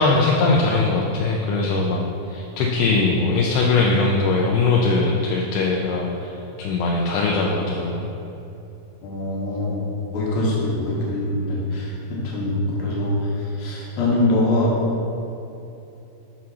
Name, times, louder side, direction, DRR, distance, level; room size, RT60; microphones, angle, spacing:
voice 1, 0.0-8.1, left 3 dB, 80° left, -1 dB, 2.5 m, -21 dB
voice 2, 9.0-9.8 10.1-14.8, left 1 dB, 65° left, -5 dB, 2.9 m, -23 dB
7.3 x 4.3 x 6.2 m, 2.9 s
omnidirectional pair, 5.1 m